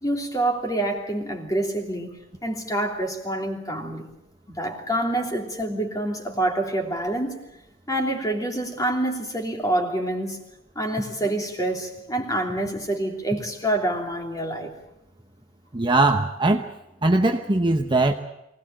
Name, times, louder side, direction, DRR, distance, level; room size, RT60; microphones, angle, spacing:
voice 1, 0.0-2.1 2.4-4.1 4.5-7.4 7.9-10.4 10.7-14.7, right 1 dB, 20° left, 3 dB, 3.0 m, -26 dB
voice 2, 15.7-16.7 17.0-18.1, right 2 dB, 25° right, 5 dB, 0.9 m, -20 dB
24.0 x 18.0 x 8.9 m, 0.91 s
head